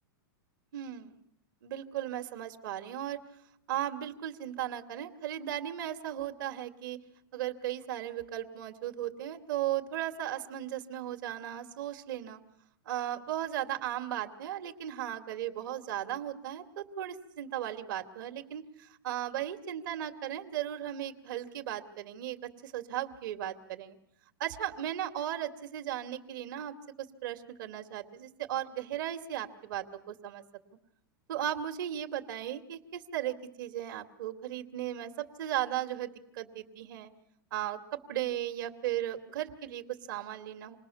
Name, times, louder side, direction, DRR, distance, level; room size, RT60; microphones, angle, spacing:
voice 1, 0.7-1.2 1.6-3.2 3.7-7.0 7.3-12.4 12.9-22.4 22.6-24.0 24.4-30.4 31.3-37.1 37.5-40.8, right 12 dB, 60° right, 6 dB, 2.3 m, -36 dB
28.0 x 20.5 x 7.0 m, 0.71 s
supercardioid pair, 170°, 12 cm